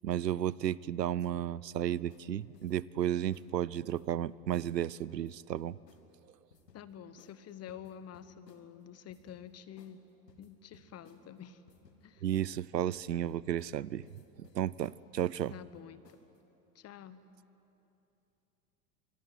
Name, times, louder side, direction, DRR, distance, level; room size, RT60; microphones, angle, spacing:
voice 1, 0.0-5.8 12.2-14.1 14.4-15.5, right 11 dB, 85° right, 23 dB, 0.6 m, -33 dB
sound 1, 2.1-2.3 2.5-3.5 3.9-4.2 4.6-4.8 5.1-6.0 6.5-6.8 7.2-7.4 7.7-8.6 9.1-9.4 9.8-10.0 10.3-11.2 11.7-12.0 12.3-12.5 12.8-13.8 14.0-15.0 15.4-15.8 16.0-16.4, left 5 dB, 80° left, 2.1 m, -61 dB
voice 2, 6.7-10.0 10.4-11.6 12.0-12.3 15.5-16.0 16.7-17.2, left 9 dB, 30° left, 15 dB, 1.2 m, -48 dB
25.0 x 22.5 x 9.4 m, 2.9 s
figure-of-eight pair, 85°, 48 cm